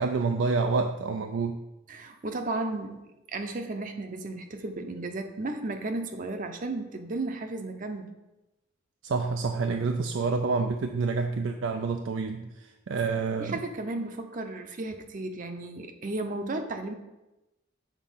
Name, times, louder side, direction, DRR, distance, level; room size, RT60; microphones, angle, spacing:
voice 1, 0.0-1.6 9.0-13.6, right 4 dB, 75° right, 5 dB, 0.4 m, -28 dB
voice 2, 1.9-3.0 3.3-8.1 13.4-16.9, right 2 dB, 45° right, 6 dB, 0.7 m, -34 dB
7.3 x 4.1 x 5.6 m, 0.99 s
head